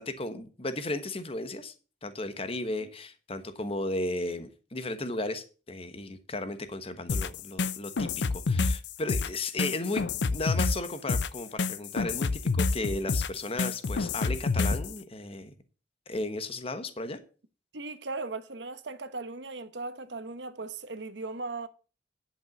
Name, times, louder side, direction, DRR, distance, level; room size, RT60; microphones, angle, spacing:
voice 1, 0.0-1.7 2.0-10.0 10.3-15.5 16.1-17.2, left 2 dB, 35° left, 1.2 m, -35 dB
sound 1, 7.1-14.9, left 4 dB, 80° left, 0.6 m, -28 dB
voice 2, 17.7-21.7, right 3 dB, 85° right, 1.0 m, -38 dB
11.0 x 5.5 x 7.1 m
head